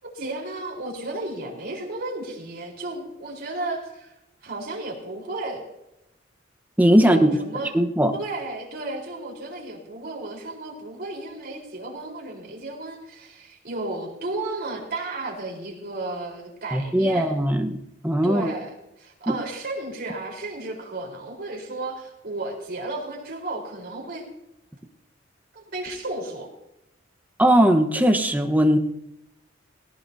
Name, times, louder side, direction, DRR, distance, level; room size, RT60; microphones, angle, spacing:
voice 1, 0.0-4.2 4.4-5.6 7.0-7.7 8.1-17.3 18.2-24.2 25.5-26.5, right 2 dB, 55° right, 0 dB, 4.1 m, -33 dB
voice 2, 6.8-7.2 7.7-8.1 16.7-17.8 18.0-18.5 19.3-19.4 27.4-28.8, equal, 10° right, 6 dB, 1.1 m, -19 dB
18.5 x 18.0 x 2.7 m, 0.86 s
head